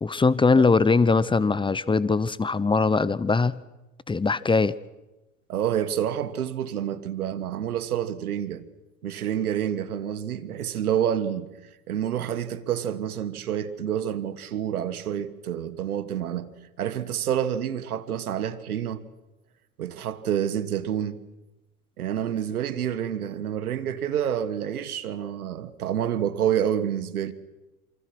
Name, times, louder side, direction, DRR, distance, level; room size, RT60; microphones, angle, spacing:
voice 1, 0.0-3.6 4.1-4.7, left 4 dB, 10° left, 0.7 m, -21 dB
voice 2, 5.5-8.6 9.0-11.5 11.9-16.5 16.8-19.0 19.8-21.2 22.0-27.3, right 9 dB, 85° right, 1.5 m, -28 dB
27.5 x 24.5 x 6.1 m
hypercardioid pair, 80°, 43 cm